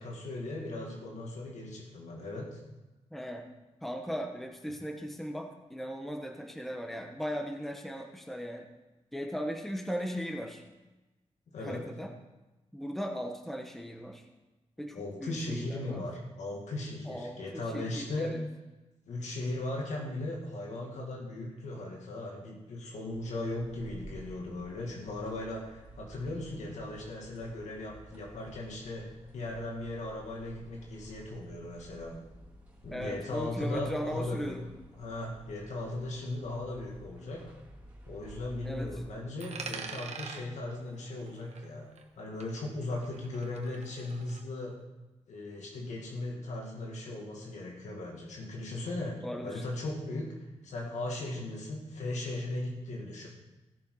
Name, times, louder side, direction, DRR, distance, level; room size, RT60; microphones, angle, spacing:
voice 1, 0.0-2.6 11.5-11.8 14.9-18.3 19.1-29.1 29.3-32.1 32.8-34.6 35.0-37.4 38.1-41.9 42.2-44.8 45.3-50.3 50.6-53.3, left 2 dB, 85° left, -1 dB, 2.1 m, -37 dB
voice 2, 3.1-3.5 3.8-8.7 9.1-10.6 11.6-12.1 12.7-14.2 14.8-16.0 17.0-18.4 32.9-34.6 38.6-38.9 49.2-49.6, equal, ahead, 2 dB, 1.3 m, -38 dB
sound 1, 23.1-39.1, right 1 dB, 15° right, 4.1 m, -53 dB
Coin (dropping), 39.4-42.2 42.4-44.4, right 5 dB, 70° right, 1.3 m, -45 dB
16.5 x 6.6 x 4.9 m, 1.1 s
cardioid pair, 90°, 12 cm